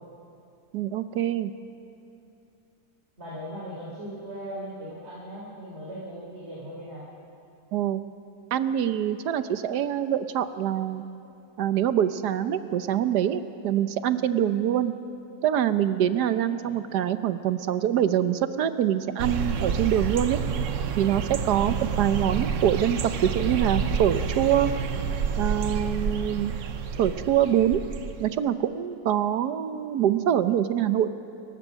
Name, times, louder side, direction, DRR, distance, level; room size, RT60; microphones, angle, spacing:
voice 1, 0.7-1.5 7.7-8.0 8.5-11.0 11.6-14.9 15.4-20.4 21.0-24.7 25.4-26.5 27.0-27.8 28.2-31.1, right 10 dB, 80° right, 11 dB, 1.4 m, -24 dB
voice 2, 3.2-7.1 16.6-16.8, equal, 40° right, -6 dB, 3.9 m, -38 dB
sound 1, 19.2-28.3, right 6 dB, 55° right, 1.1 m, -29 dB
29.0 x 15.5 x 6.4 m, 2.7 s
omnidirectional pair, 1.7 m